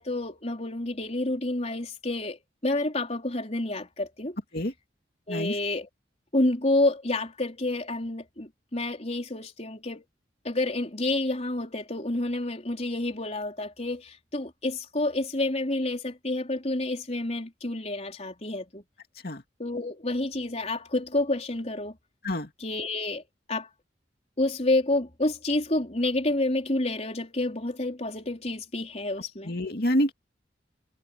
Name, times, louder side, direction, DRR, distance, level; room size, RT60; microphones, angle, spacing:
voice 1, 0.0-4.4 5.3-5.9 6.3-10.0 10.4-18.8 19.6-22.0 22.6-23.2 23.5-23.7 24.4-29.5, left 2 dB, 35° left, 4.3 m, -29 dB
voice 2, 29.4-30.1, equal, 55° left, 2.5 m, -27 dB
head